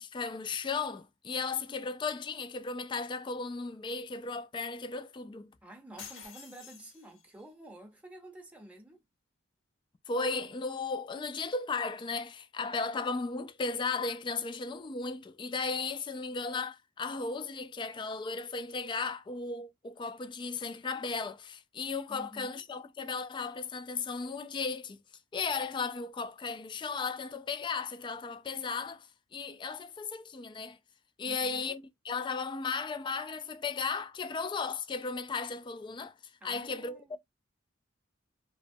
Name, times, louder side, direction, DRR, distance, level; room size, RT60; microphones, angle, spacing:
voice 1, 0.0-5.5 10.1-25.0 25.3-30.8 31.2-36.1 36.4-37.2, left 4 dB, 25° left, 0.3 m, -35 dB
voice 2, 5.6-9.0 22.1-22.6 31.2-31.8 36.4-37.2, right 1 dB, 5° right, 0.7 m, -50 dB
sound 1, 6.0-7.4, left 6 dB, 80° left, 0.9 m, -49 dB
2.9 x 2.1 x 2.6 m
head